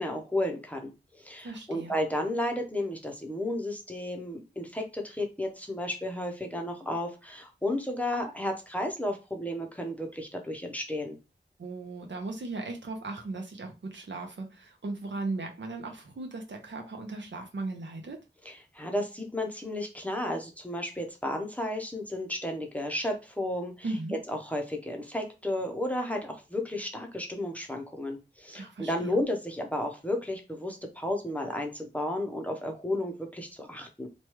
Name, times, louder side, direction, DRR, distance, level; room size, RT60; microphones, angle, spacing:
voice 1, 0.0-11.2 18.4-23.9 24.3-34.1, left 1 dB, 10° left, 2 dB, 0.6 m, -33 dB
voice 2, 1.4-1.9 11.6-18.2 23.8-24.2 28.5-29.1, right 3 dB, 70° right, 3 dB, 0.7 m, -37 dB
3.0 x 2.3 x 3.0 m, 0.28 s
wide cardioid pair, 70°, 19 cm